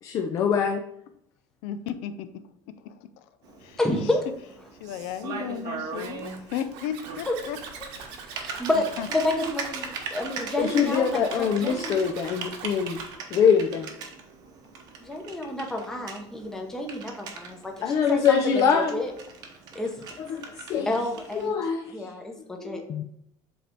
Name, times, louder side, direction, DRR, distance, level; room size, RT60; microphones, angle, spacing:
voice 1, 0.0-0.8 10.6-13.0 13.3-13.9 17.8-19.0 20.2-20.9 21.3-22.1 22.6-23.0, left 7 dB, 35° left, 0.5 m, -24 dB
voice 2, 1.6-2.3 2.8-4.1 4.8-7.6 8.0-8.1 9.0-9.1, left 9 dB, 80° left, 0.6 m, -35 dB
Typing, 3.4-21.5, right 5 dB, 45° right, 0.9 m, -40 dB
voice 3, 3.8-4.2 7.3-7.4 8.3-12.0 15.0-19.1 19.7-20.1 20.9-21.6 21.9-22.8, left 1 dB, 5° left, 0.8 m, -29 dB
Zipper (clothing), 5.9-13.1, right 6 dB, 70° right, 1.2 m, -43 dB
7.7 x 3.4 x 4.3 m
cardioid pair, 180°, 10 cm